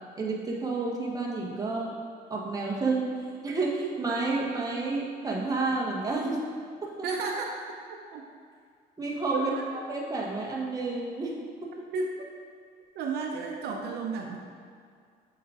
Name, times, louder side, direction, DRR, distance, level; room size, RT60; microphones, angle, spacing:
voice 1, 0.2-1.9 2.3-3.1 3.4-6.4 6.8-6.9 9.0-9.5 9.9-11.7, right 3 dB, 20° right, -3 dB, 1.3 m, -30 dB
voice 2, 7.0-7.6 7.9-8.2 9.3-9.8 11.9-12.1 12.9-14.4, right 4 dB, 75° right, 1 dB, 0.7 m, -32 dB
7.0 x 3.9 x 4.9 m, 2.2 s
cardioid pair, 110°, 17 cm